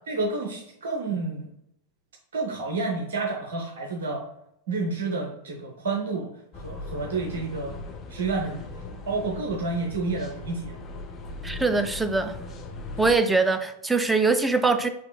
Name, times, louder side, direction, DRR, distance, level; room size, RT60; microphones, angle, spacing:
voice 1, 0.1-1.5 2.3-4.2 4.7-6.3 6.6-7.8 8.1-10.8, right 3 dB, 65° right, 0.8 m, -30 dB
sound 1, 6.5-13.2, left 2 dB, 25° left, 0.7 m, -39 dB
voice 2, 11.4-12.4 13.0-14.9, right 3 dB, 10° right, 0.4 m, -22 dB
6.5 x 3.0 x 2.3 m
figure-of-eight pair, 90°, 0 cm